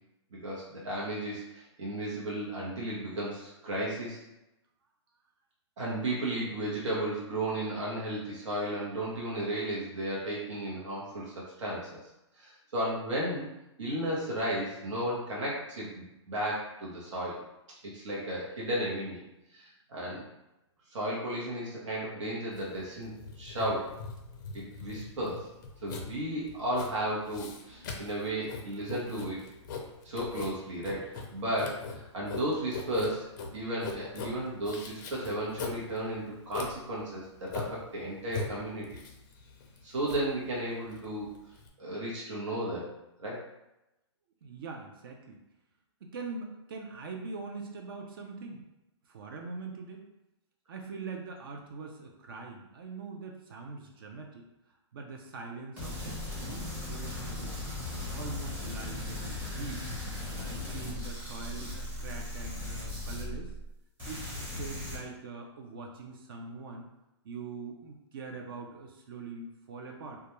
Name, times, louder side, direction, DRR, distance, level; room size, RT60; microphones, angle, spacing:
voice 1, 0.3-4.2 5.8-12.0 12.4-13.5 13.8-17.4 17.8-19.2 19.5-20.3 20.9-24.0 24.5-25.5 25.8-29.4 30.0-39.0 39.8-41.3 41.8-42.9 43.2-43.4, right 1 dB, 80° right, -5 dB, 0.9 m, -34 dB
Writing, 22.5-41.7, left 4 dB, 40° left, 0.4 m, -41 dB
voice 2, 44.4-45.4 46.0-48.6 49.0-50.1 50.7-54.4 54.9-57.6 58.1-59.9 60.3-63.5 64.0-66.9 67.2-70.2, right 4 dB, 50° right, 2 dB, 0.4 m, -43 dB
sound 1, 55.8-63.7 64.0-65.0, left 2 dB, 10° right, 0.7 m, -38 dB
2.3 x 2.2 x 2.9 m, 0.93 s
hypercardioid pair, 160°, 15 cm